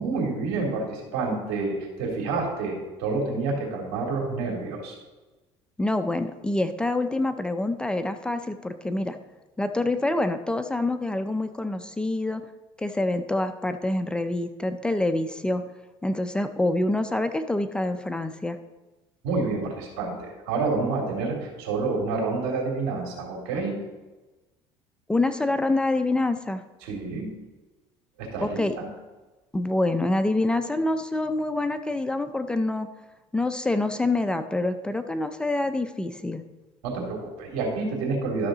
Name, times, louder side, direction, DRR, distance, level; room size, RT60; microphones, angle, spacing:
voice 1, 0.0-5.0 19.2-23.8 26.8-27.3 28.2-28.9 36.8-38.5, right 3 dB, 85° right, 0 dB, 2.9 m, -28 dB
voice 2, 5.8-9.2 9.6-12.4 12.8-15.6 16.0-18.6 25.1-26.6 28.4-28.8 29.5-32.9 33.3-36.4, left 2 dB, 10° left, 8 dB, 0.5 m, -26 dB
12.5 x 6.5 x 3.9 m, 1.1 s
cardioid pair, 125°, 12 cm